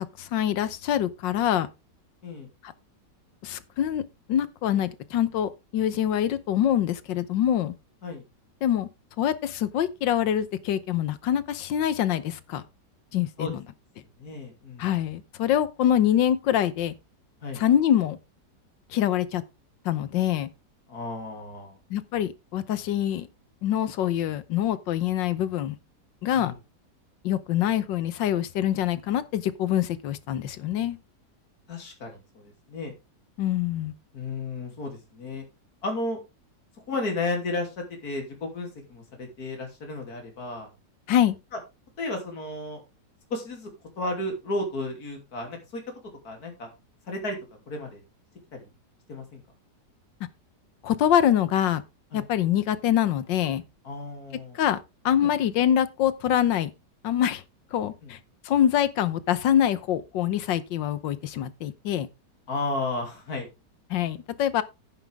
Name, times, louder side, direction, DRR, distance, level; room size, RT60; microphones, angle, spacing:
voice 1, 0.2-1.7 2.6-2.7 3.4-4.0 4.3-7.7 8.6-8.9 9.2-12.6 13.1-13.6 14.8-16.9 17.5-18.2 18.9-19.4 19.8-20.5 21.9-23.3 23.6-25.7 26.2-26.5 27.2-31.0 33.4-33.9 41.1-41.4 50.8-51.8 52.1-53.6 54.5-54.8 55.0-56.7 57.0-57.4 57.7-58.2 58.4-62.1 63.9-64.6, left 10 dB, 90° left, 1.6 m, -25 dB
voice 2, 14.2-14.9 17.4-17.6 20.9-21.8 26.4-26.5 31.7-32.9 34.1-35.4 35.8-36.2 36.9-40.7 42.0-42.8 43.3-43.7 44.0-45.8 46.2-46.7 47.1-47.4 47.7-48.0 48.5-48.6 49.1-49.4 52.1-52.2 53.8-54.6 55.2-55.3 58.0-58.1 62.5-63.5, left 2 dB, 55° left, 3.4 m, -33 dB
10.0 x 9.6 x 3.5 m
omnidirectional pair, 1.9 m